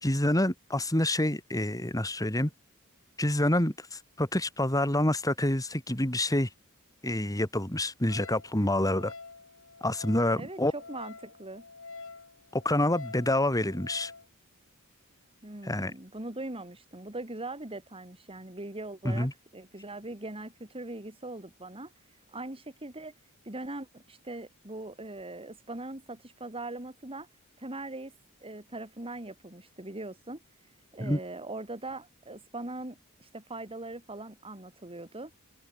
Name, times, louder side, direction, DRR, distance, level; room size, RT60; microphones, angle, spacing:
voice 1, 0.0-2.5 3.2-6.5 7.0-9.1 9.8-10.7 12.5-14.1 15.6-15.9 19.0-19.3 31.0-31.2, left 1 dB, 15° left, 3.5 m, -27 dB
Wind instrument woodwind instrument, 8.1-14.3, left 4 dB, 65° left, 7.0 m, -47 dB
voice 2, 10.4-11.7 15.4-21.9 22.3-23.1 23.4-27.3 27.6-28.1 28.4-30.4 30.9-35.3, right 2 dB, 25° right, 3.6 m, -41 dB
head